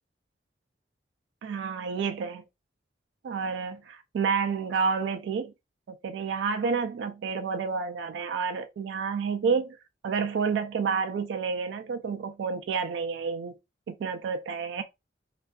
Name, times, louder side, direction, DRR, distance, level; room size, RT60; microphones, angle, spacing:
voice 1, 1.4-2.4 3.2-5.5 5.9-9.8 10.0-13.6 13.9-14.8, right 5 dB, 80° right, 0.3 m, -29 dB
2.5 x 2.3 x 2.2 m
head